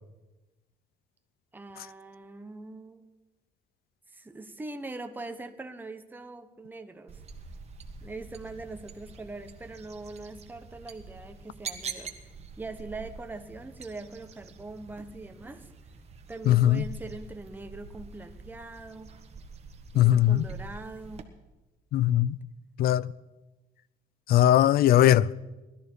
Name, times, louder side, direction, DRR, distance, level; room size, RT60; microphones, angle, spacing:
voice 1, 1.5-3.0 4.1-7.2 8.0-15.7 16.3-19.1 19.9-21.3, right 2 dB, 10° right, 1.1 m, -42 dB
sound 1, 7.1-21.2, right 5 dB, 40° right, 1.5 m, -45 dB
voice 2, 16.5-16.8 19.9-20.5 21.9-22.4 22.8-23.1 24.3-25.3, left 12 dB, 65° left, 0.5 m, -20 dB
19.5 x 13.0 x 4.6 m
cardioid pair, 110°, 17 cm